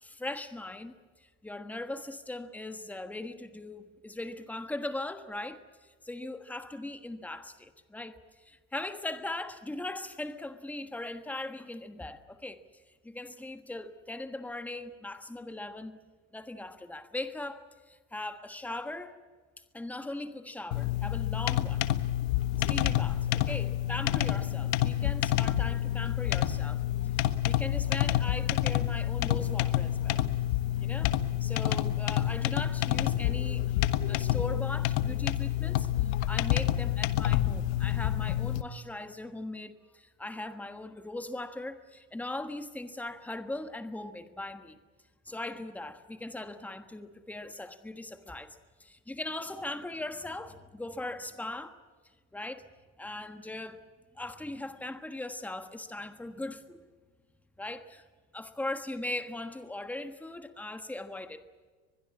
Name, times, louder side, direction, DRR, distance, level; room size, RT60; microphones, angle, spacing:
voice 1, 0.0-0.9 1.4-12.6 13.0-16.0 16.3-19.2 19.7-21.9 22.6-26.8 27.1-30.2 30.8-33.8 34.1-44.8 45.2-51.8 52.3-52.7 53.0-53.8 54.1-56.9 57.6-58.0 58.3-61.5, left 2 dB, 5° left, 1.4 m, -39 dB
sound 1, 20.7-38.6, left 13 dB, 80° left, 1.4 m, -28 dB
23.5 x 21.5 x 8.4 m
cardioid pair, 155°, 33 cm